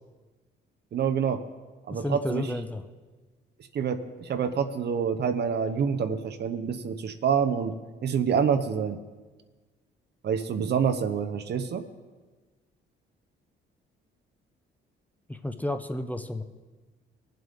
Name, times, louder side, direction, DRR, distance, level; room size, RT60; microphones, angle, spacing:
voice 1, 0.9-1.4 1.9-2.5 3.7-7.7 8.0-9.0 10.2-11.8, right 7 dB, 55° right, 9 dB, 0.9 m, -27 dB
voice 2, 1.9-2.8 15.3-16.4, left 1 dB, 10° left, 8 dB, 0.7 m, -32 dB
20.0 x 7.7 x 3.5 m, 1.3 s
cardioid pair, 90°, 20 cm